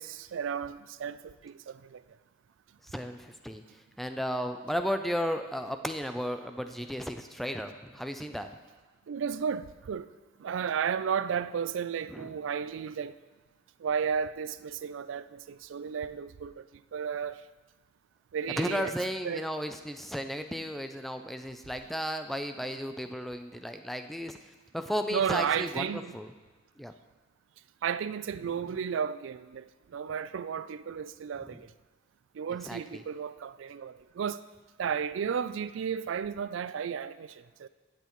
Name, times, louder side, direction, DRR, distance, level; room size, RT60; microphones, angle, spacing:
voice 1, 0.0-2.0 9.1-10.1 10.4-13.2 13.8-16.6 16.9-17.4 18.3-18.9 19.2-19.5 25.1-26.2 27.8-31.7 32.3-34.4 34.8-37.7, right 7 dB, 75° right, 0.3 m, -33 dB
voice 2, 2.8-3.6 4.0-8.5 12.1-12.3 18.6-26.3 26.8-26.9 28.4-28.5 31.5-31.6 32.6-33.0, equal, ahead, 0.3 m, -34 dB
15.0 x 7.8 x 3.0 m
head